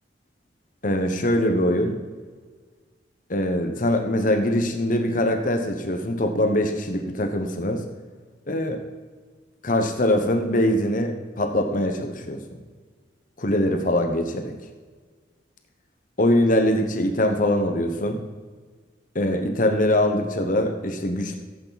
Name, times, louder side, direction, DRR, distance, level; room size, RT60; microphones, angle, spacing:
voice 1, 0.8-2.0 3.3-7.8 8.5-8.8 9.6-12.4 13.4-14.5 16.2-18.2 19.1-21.4, left 1 dB, 45° left, 5 dB, 1.0 m, -22 dB
14.5 x 8.4 x 4.1 m, 1.5 s
head